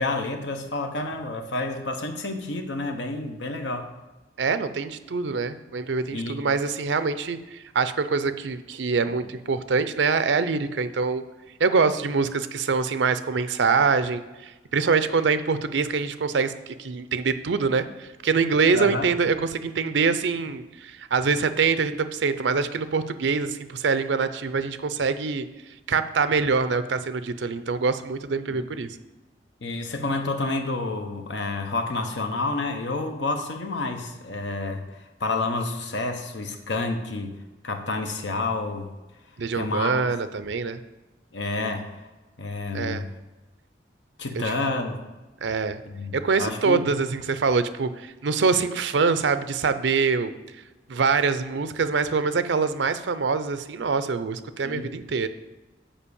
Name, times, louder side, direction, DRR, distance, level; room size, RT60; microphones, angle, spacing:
voice 1, 0.0-3.9 6.1-6.4 18.7-19.1 28.5-28.7 29.6-37.4 37.6-38.9 39.5-40.1 41.3-42.0 42.4-43.0 44.2-45.0 45.9-46.8 54.6-54.9, left 2 dB, 75° left, 5 dB, 1.0 m, -29 dB
voice 2, 4.4-11.2 11.6-25.4 25.9-28.9 39.4-40.8 42.7-43.1 44.5-44.6 45.4-45.8 46.1-50.3 50.9-55.3, right 5 dB, 80° right, 12 dB, 0.5 m, -24 dB
7.2 x 5.1 x 7.0 m, 1.1 s
head